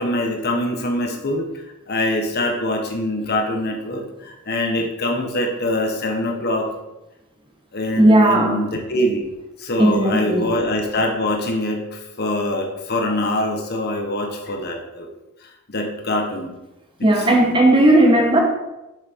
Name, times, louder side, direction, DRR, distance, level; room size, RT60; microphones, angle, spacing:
voice 1, 0.0-1.5 1.9-6.7 7.7-9.3 9.6-15.1 15.7-16.6 17.0-17.3, left 1 dB, 50° left, 2 dB, 1.2 m, -24 dB
voice 2, 8.0-8.5 9.8-10.5 17.0-18.4, right 1 dB, 25° right, 2 dB, 1.1 m, -15 dB
7.2 x 5.9 x 4.5 m, 0.97 s
head